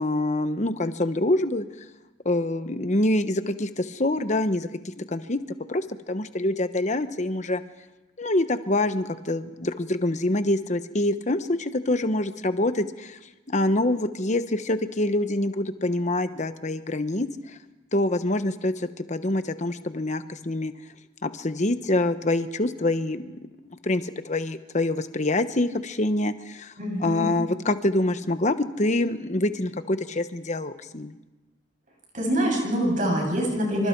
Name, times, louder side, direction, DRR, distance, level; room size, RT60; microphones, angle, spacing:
voice 1, 0.0-1.7 2.2-5.4 5.7-7.6 8.2-13.2 13.5-17.6 17.9-20.7 21.2-23.3 23.7-26.7 27.0-31.1, left 1 dB, 40° left, 10 dB, 1.1 m, -26 dB
voice 2, 26.8-27.3 32.1-33.9, equal, 40° right, 1 dB, 8.0 m, -25 dB
26.5 x 25.5 x 4.7 m, 1.1 s
head